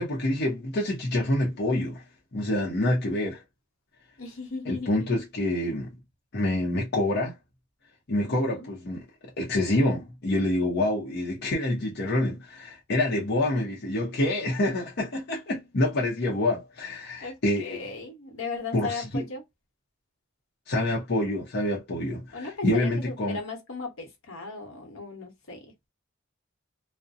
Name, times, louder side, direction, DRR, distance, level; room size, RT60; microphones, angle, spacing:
voice 1, 0.0-2.0 2.3-3.4 4.7-5.9 6.3-7.3 8.1-9.0 9.4-17.8 18.7-19.2 20.7-23.4, left 1 dB, 55° left, 0.7 m, -27 dB
voice 2, 4.2-5.2 8.2-8.7 17.2-19.4 22.3-25.6, left 4 dB, 90° left, 1.0 m, -37 dB
2.5 x 2.0 x 2.4 m
head